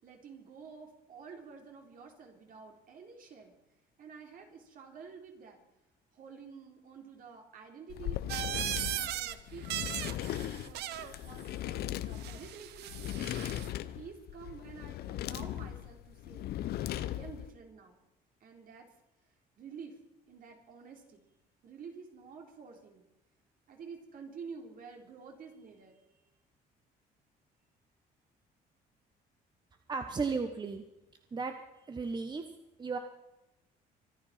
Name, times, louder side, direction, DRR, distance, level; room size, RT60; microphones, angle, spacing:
voice 1, 0.0-3.5 4.0-5.6 6.1-8.2 8.6-9.7 10.3-10.9 11.2-13.6 14.0-16.5 17.0-18.0 18.4-18.9 19.6-20.0 20.3-21.2 21.6-23.1 23.7-26.2, right 5 dB, 55° right, 3 dB, 3.6 m, -50 dB
sound 1, 7.9-17.5, left 13 dB, 70° left, 0.8 m, -38 dB
sound 2, 8.3-9.4 9.6-11.1 12.2-13.7, right 13 dB, 75° right, 0.9 m, -38 dB
voice 2, 29.9-30.8 31.3-31.6 31.9-32.4 32.8-33.0, right 4 dB, 25° right, 6 dB, 1.1 m, -34 dB
25.0 x 9.9 x 5.8 m, 0.94 s
cardioid pair, 110°, 17 cm